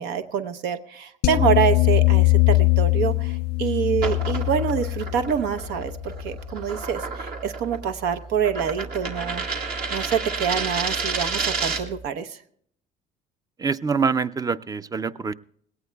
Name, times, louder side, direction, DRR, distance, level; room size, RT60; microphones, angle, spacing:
voice 1, 0.0-9.4 9.9-12.4, right 8 dB, 85° right, 9 dB, 0.9 m, -26 dB
sound 1, 1.2-6.5, left 22 dB, 70° left, 0.4 m, -21 dB
sound 2, 3.9-12.0, right 4 dB, 65° right, 2.3 m, -30 dB
voice 2, 13.6-15.3, right 5 dB, 20° right, 15 dB, 0.4 m, -25 dB
19.5 x 17.5 x 2.3 m, 0.65 s
cardioid pair, 110°, 17 cm